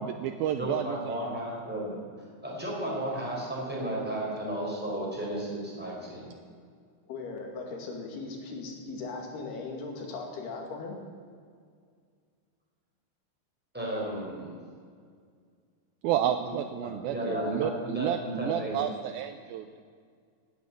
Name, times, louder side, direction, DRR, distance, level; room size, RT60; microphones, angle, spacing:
voice 1, 0.0-1.3 16.0-19.8, right 10 dB, 90° right, 8 dB, 2.1 m, -31 dB
voice 2, 0.6-2.0 2.4-6.3 13.7-14.5 16.8-18.8, right 1 dB, ahead, -4 dB, 4.4 m, -33 dB
voice 3, 7.1-11.0, left 3 dB, 70° left, 1 dB, 4.1 m, -38 dB
17.5 x 9.7 x 7.8 m, 2.1 s
omnidirectional pair, 4.8 m